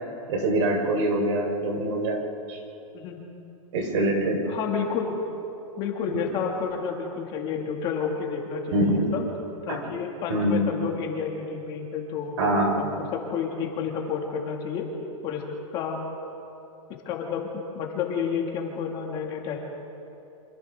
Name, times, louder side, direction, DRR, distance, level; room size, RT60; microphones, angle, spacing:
voice 1, 0.3-2.2 2.5-2.6 3.7-4.4 8.7-9.1 9.7-9.8 10.3-10.7 12.4-12.8, right 1 dB, 60° right, 1 dB, 4.5 m, -24 dB
voice 2, 4.5-5.2 5.8-9.2 9.7-12.4 12.8-14.8 15.2-15.4 15.7-16.0 17.1-17.5 17.7-19.6, left 6 dB, 25° left, 0 dB, 2.4 m, -30 dB
29.0 x 26.5 x 3.8 m, 2.9 s
supercardioid pair, 165°, 18 cm